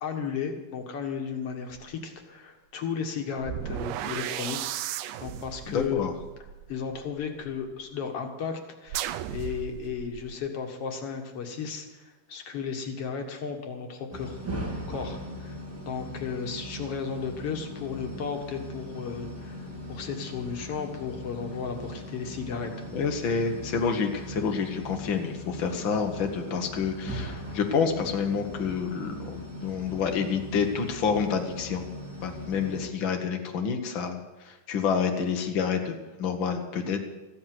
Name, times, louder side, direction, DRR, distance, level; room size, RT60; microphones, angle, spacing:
voice 1, 0.0-6.1 6.7-14.4 14.9-15.6 15.9-19.6 19.9-22.7, left 6 dB, 55° left, 4 dB, 1.9 m, -34 dB
sound 1, 1.7-1.9 3.4-7.5 8.9-10.3, right 11 dB, 80° right, 2.0 m, -35 dB
voice 2, 5.7-6.1 22.9-31.8 32.2-37.0, left 6 dB, 75° left, 3 dB, 1.1 m, -28 dB
sound 2, 14.1-32.9, equal, 10° right, 0.8 m, -39 dB
14.5 x 11.0 x 7.7 m, 1.1 s
omnidirectional pair, 4.3 m